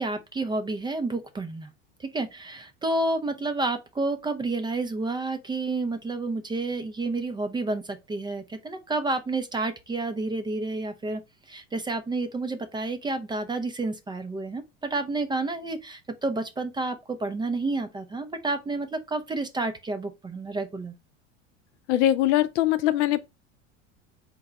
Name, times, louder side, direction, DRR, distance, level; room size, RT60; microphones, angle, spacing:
voice 1, 0.0-1.7 2.0-11.2 11.5-20.9, right 2 dB, 10° right, 0.4 m, -30 dB
voice 2, 21.9-23.3, left 13 dB, 65° left, 0.6 m, -22 dB
3.9 x 2.2 x 4.0 m
hypercardioid pair, 80°, 38 cm